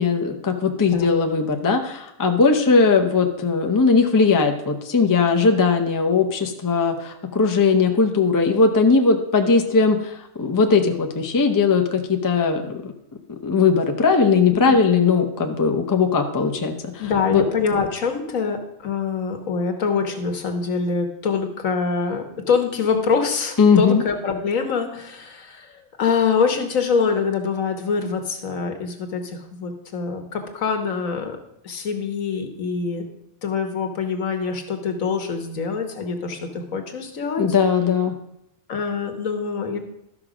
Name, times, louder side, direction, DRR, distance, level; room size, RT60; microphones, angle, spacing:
voice 1, 0.0-12.9 13.4-17.1 17.3-17.4 23.6-24.0 37.4-38.1, left 4 dB, 20° left, 5 dB, 0.6 m, -19 dB
voice 2, 17.0-31.4 31.6-33.1 33.4-37.4 38.7-39.8, left 5 dB, 75° left, 5 dB, 1.5 m, -24 dB
12.5 x 6.0 x 4.9 m, 0.80 s
omnidirectional pair, 1.4 m